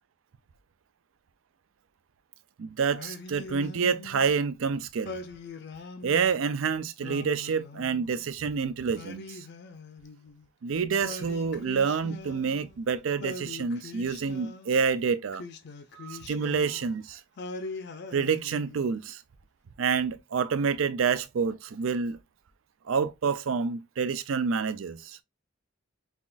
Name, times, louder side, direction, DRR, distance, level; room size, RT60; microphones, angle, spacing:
voice 1, 2.6-5.2 6.0-9.4 10.6-15.4 15.9-17.2 18.1-19.2 19.8-22.2 22.9-25.2, right 5 dB, 85° right, 0.5 m, -28 dB
Singing, 2.9-4.4 5.0-6.4 7.0-8.3 8.9-10.5 11.0-12.8 13.2-14.8 15.3-17.0 17.4-19.0, left 3 dB, 55° left, 0.5 m, -42 dB
5.7 x 2.4 x 2.4 m
head